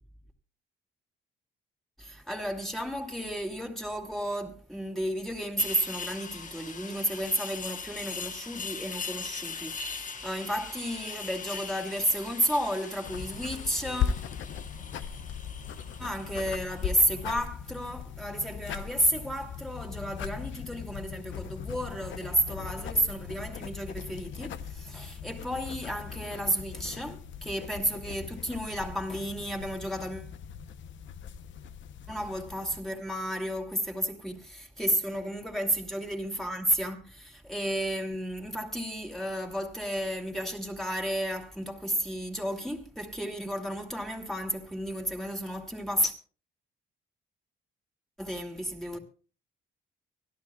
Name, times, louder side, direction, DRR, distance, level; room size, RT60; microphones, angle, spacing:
voice 1, 2.0-14.2 16.0-30.3 32.1-46.1 48.2-49.0, equal, ahead, 2.4 m, -32 dB
sound 1, 5.6-17.5, left 5 dB, 40° left, 1.2 m, -41 dB
sound 2, 13.0-32.8, left 7 dB, 70° left, 0.9 m, -39 dB
24.5 x 12.5 x 2.4 m
cardioid pair, 90°, 20 cm